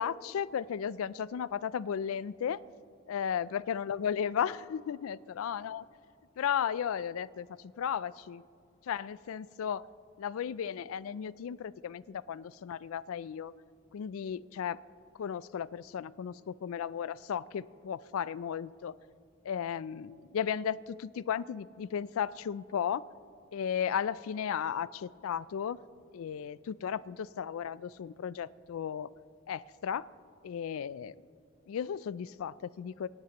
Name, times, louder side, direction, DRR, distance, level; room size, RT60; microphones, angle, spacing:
voice 1, 0.0-2.6 3.1-5.8 6.4-8.4 8.9-9.8 10.2-13.5 13.9-14.8 15.2-18.9 19.4-23.0 23.5-25.8 26.1-29.1 29.5-30.1 30.4-31.1 31.7-33.1, left 8 dB, 75° left, 19 dB, 0.3 m, -35 dB
25.0 x 10.5 x 2.9 m, 2.4 s
head